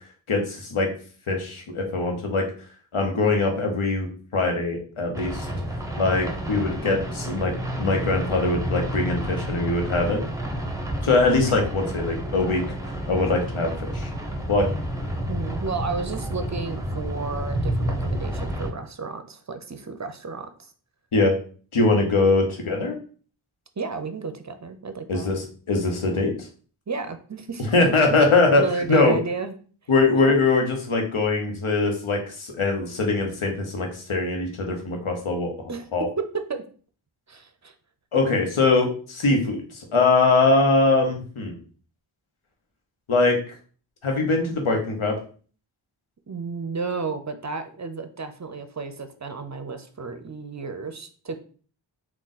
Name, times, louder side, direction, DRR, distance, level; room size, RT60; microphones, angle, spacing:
voice 1, 0.3-0.9 1.3-2.5 2.9-4.1 4.3-5.5 6.0-7.5 7.8-10.2 11.0-12.6 13.1-14.1 14.5-14.7 21.1-21.4 21.7-23.0 25.1-26.3 27.7-28.6 28.9-29.2 29.9-36.1 38.1-41.6 43.1-43.4 44.0-45.1, left 3 dB, 80° left, 2 dB, 1.0 m, -22 dB
sound 1, 5.1-18.7, equal, 5° right, 0.8 m, -30 dB
voice 2, 15.3-20.7 23.8-25.3 26.9-27.6 28.5-29.5 35.7-35.9 36.2-36.3 36.5-36.6 37.3-37.7 46.3-51.3, right 4 dB, 35° right, 8 dB, 0.5 m, -32 dB
3.7 x 2.4 x 4.0 m, 0.41 s
cardioid pair, 40°, 49 cm